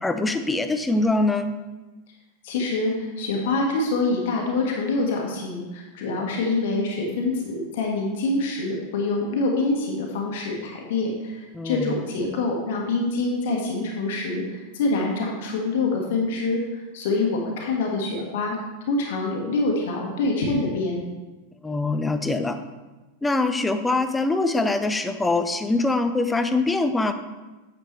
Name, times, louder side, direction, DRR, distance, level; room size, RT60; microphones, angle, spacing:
voice 1, 0.0-1.6 11.5-12.0 21.6-22.6 23.2-27.1, left 2 dB, 10° left, 9 dB, 0.5 m, -23 dB
voice 2, 2.4-16.6 16.9-18.6 18.9-21.0, left 3 dB, 55° left, 0 dB, 1.4 m, -25 dB
8.9 x 6.8 x 3.2 m, 1.2 s
figure-of-eight pair, 90°, 0 cm